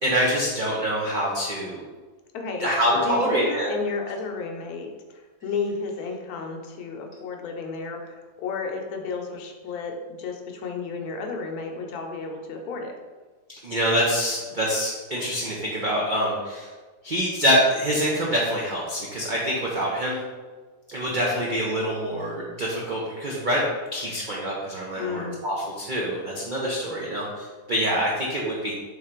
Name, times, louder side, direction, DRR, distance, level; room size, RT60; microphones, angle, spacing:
voice 1, 0.0-1.9 2.6-3.7 13.6-16.7 17.0-20.2 20.9-28.7, equal, 85° right, -4 dB, 0.4 m, -25 dB
voice 2, 2.3-2.7 3.0-4.9 5.4-12.9 25.0-25.4, left 4 dB, 70° left, 3 dB, 1.1 m, -32 dB
3.7 x 3.2 x 4.4 m, 1.4 s
omnidirectional pair, 1.8 m